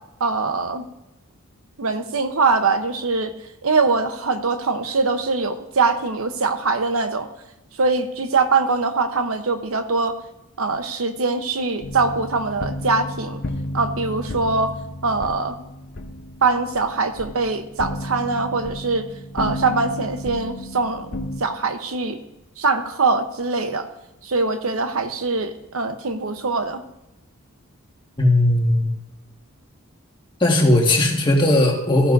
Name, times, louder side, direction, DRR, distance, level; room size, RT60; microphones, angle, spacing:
voice 1, 0.2-0.9 1.8-3.3 3.6-7.3 7.8-10.1 10.6-13.4 13.7-14.7 15.0-15.6 16.4-19.1 19.3-21.1 21.4-22.2 22.6-23.9 24.2-26.8, right 4 dB, 75° right, 8 dB, 0.9 m, -22 dB
sound 1, 11.8-21.4, left 1 dB, 50° left, 0.8 m, -33 dB
voice 2, 28.2-28.9 30.4-32.1, left 1 dB, 20° left, 0 dB, 1.7 m, -17 dB
13.5 x 11.5 x 2.6 m, 0.96 s
head